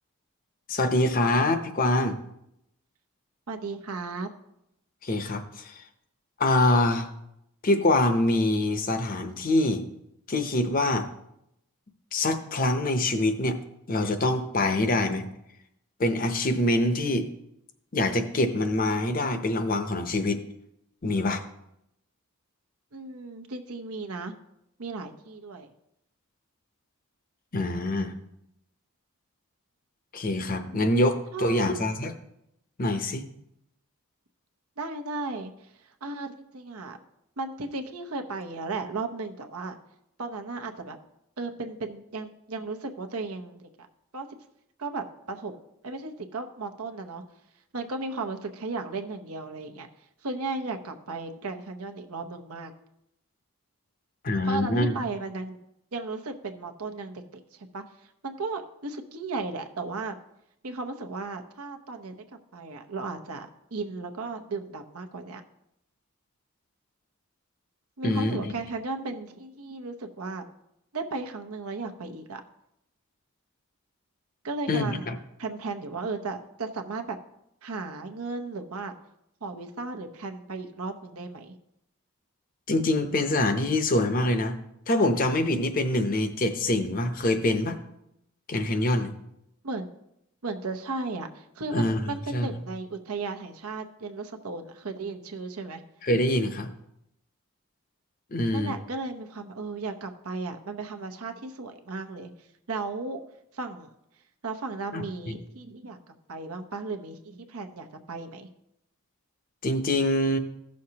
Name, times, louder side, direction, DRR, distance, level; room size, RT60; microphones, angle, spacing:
voice 1, 0.7-2.2 5.0-5.8 6.4-7.1 7.6-9.8 10.3-11.1 12.1-13.6 13.9-15.3 16.0-17.3 17.9-20.5 21.0-21.4 27.5-28.1 30.1-32.1 32.8-33.2 54.2-54.9 68.0-68.5 74.7-75.1 82.7-84.6 84.9-87.8 88.5-89.1 91.7-92.5 96.0-96.7 98.3-98.7 104.9-105.4 109.6-110.4, left 1 dB, 40° left, 8 dB, 0.7 m, -25 dB
voice 2, 3.5-4.3 22.9-24.3 24.8-25.7 30.7-31.7 34.8-35.7 36.0-37.0 37.4-39.8 40.2-41.0 41.4-43.7 44.1-44.3 44.8-45.6 45.8-47.2 47.7-49.9 50.2-52.7 54.4-55.6 55.9-57.8 58.2-60.1 60.6-62.2 62.5-63.5 63.7-65.4 68.0-70.4 70.9-72.4 74.4-75.1 75.4-77.2 77.6-78.9 79.4-81.5 89.6-89.9 90.4-95.8 98.5-102.3 102.7-103.2 103.5-103.9 104.4-106.0 106.3-108.5, right 3 dB, 85° right, 5 dB, 0.9 m, -35 dB
15.5 x 6.4 x 2.9 m, 0.81 s
head